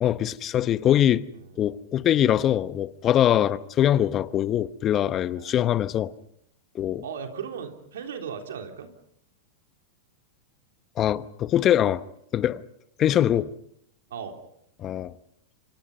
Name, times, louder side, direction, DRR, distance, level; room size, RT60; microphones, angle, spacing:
voice 1, 0.0-1.3 1.6-6.1 6.7-7.0 11.0-12.0 12.3-12.6 13.0-13.5 14.8-15.1, left 11 dB, 30° left, 1.0 m, -23 dB
voice 2, 7.0-8.9 14.1-14.4, right 7 dB, 80° right, 3.6 m, -36 dB
28.5 x 25.0 x 5.5 m
hypercardioid pair, 115°, 0 cm